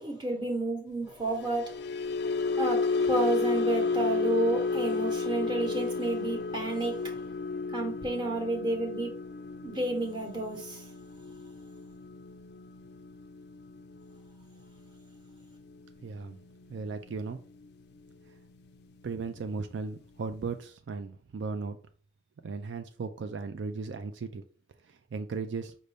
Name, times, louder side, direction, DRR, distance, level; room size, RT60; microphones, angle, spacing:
voice 1, 0.0-1.7 2.6-7.1 7.7-9.1 9.6-10.8, right 2 dB, 25° right, 0.9 m, -31 dB
sound 1, 1.3-17.6 18.0-18.3 18.6-18.9, left 4 dB, 55° left, 0.3 m, -33 dB
voice 2, 16.0-16.4 16.7-17.4 19.0-21.8 22.4-24.4 24.8-25.7, right 4 dB, 70° right, 0.3 m, -36 dB
5.3 x 2.6 x 3.4 m
head